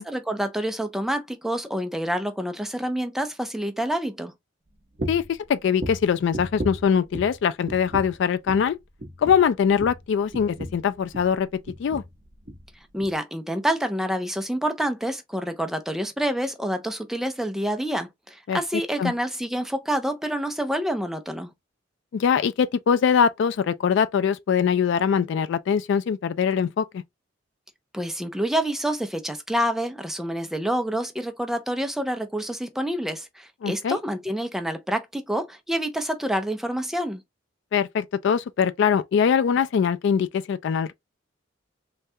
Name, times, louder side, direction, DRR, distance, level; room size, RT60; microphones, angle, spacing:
voice 1, 0.0-4.3 12.9-21.5 27.9-37.2, equal, ahead, 0.4 m, -27 dB
sound 1, 5.0-5.4 5.8-7.4 7.7-8.2 8.5-8.7 9.0-11.4 11.7-12.1 12.4-12.7 13.0-13.1, equal, 35° right, 0.7 m, -35 dB
voice 2, 5.1-8.8 9.2-11.5 11.8-12.0 18.5-18.6 19.0-19.1 22.1-27.0 33.6-34.0 37.7-40.9, left 7 dB, 70° left, 0.3 m, -22 dB
3.2 x 2.3 x 2.6 m
head